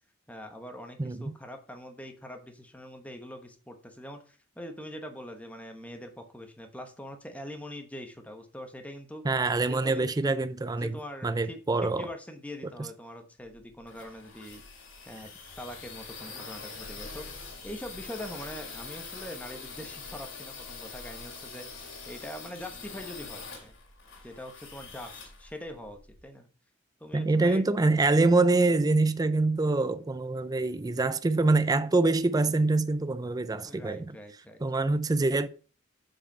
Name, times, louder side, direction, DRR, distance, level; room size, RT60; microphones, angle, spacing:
voice 1, 0.3-9.2 9.7-10.1 10.6-14.6 15.1-15.3 15.6-23.8 24.2-26.5 27.0-27.6 33.6-34.6, left 1 dB, 5° left, 1.0 m, -43 dB
voice 2, 1.0-1.3 9.2-11.0 11.2-12.1 12.8-12.9 27.1-34.2 34.6-35.5, right 3 dB, 20° right, 0.4 m, -25 dB
sound 1, 13.5-26.2, left 4 dB, 70° left, 2.3 m, -44 dB
7.5 x 4.9 x 5.4 m
head